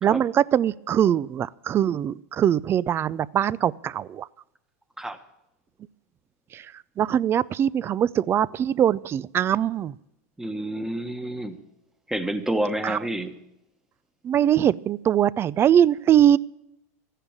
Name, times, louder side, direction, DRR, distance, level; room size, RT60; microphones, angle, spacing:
voice 1, 0.0-4.3 6.5-9.9 12.8-13.0 14.2-16.4, right 10 dB, 30° right, 21 dB, 0.4 m, -22 dB
voice 2, 10.4-11.6 12.1-13.4, right 1 dB, 5° right, 9 dB, 1.3 m, -29 dB
14.0 x 10.0 x 7.3 m, 0.84 s
supercardioid pair, 115°, 8 cm